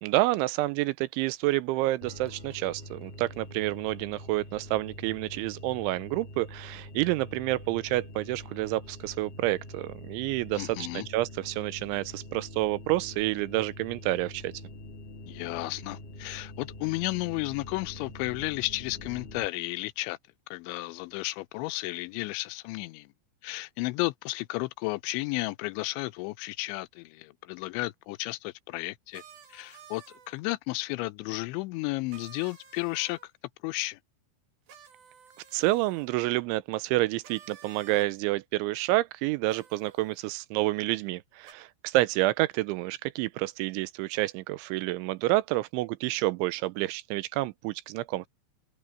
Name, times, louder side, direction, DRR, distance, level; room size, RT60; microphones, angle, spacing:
voice 1, 0.0-14.5 35.5-48.3, right 18 dB, 90° right, 3.2 m, -29 dB
sound 1, 2.0-19.5, left 1 dB, 15° left, 1.9 m, -45 dB
voice 2, 10.6-11.1 15.3-20.2 20.5-23.1 23.4-29.2 29.5-33.3 33.6-34.0, left 21 dB, 85° left, 3.0 m, -33 dB
sound 2, 29.1-30.4 32.1-33.3 34.7-36.1 37.2-38.1 39.5-40.2 41.4-41.5, right 8 dB, 55° right, 4.5 m, -52 dB
open air
omnidirectional pair, 5.3 m